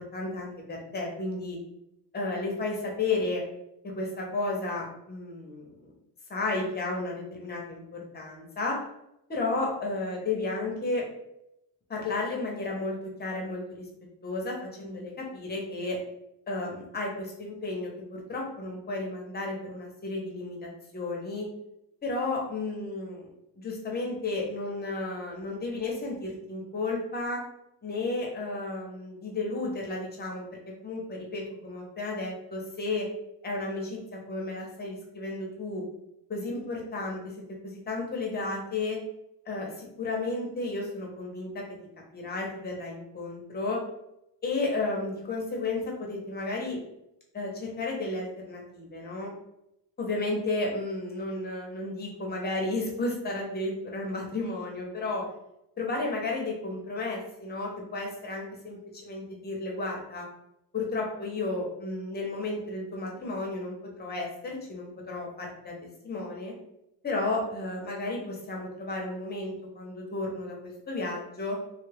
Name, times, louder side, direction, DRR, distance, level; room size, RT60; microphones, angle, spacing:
voice 1, 0.0-1.6 2.1-3.4 3.8-5.9 6.3-8.8 9.3-11.0 11.9-13.6 14.2-16.0 16.5-21.5 22.0-23.3 23.5-27.4 27.8-33.1 33.4-35.8 36.3-39.0 39.5-41.6 42.1-43.8 44.4-46.8 47.3-49.3 50.0-55.3 55.8-60.3 60.7-65.7 66.0-66.5 67.0-71.6, left 2 dB, 25° left, -1 dB, 0.6 m, -33 dB
3.2 x 2.3 x 3.3 m, 0.84 s
cardioid pair, 155°, 43 cm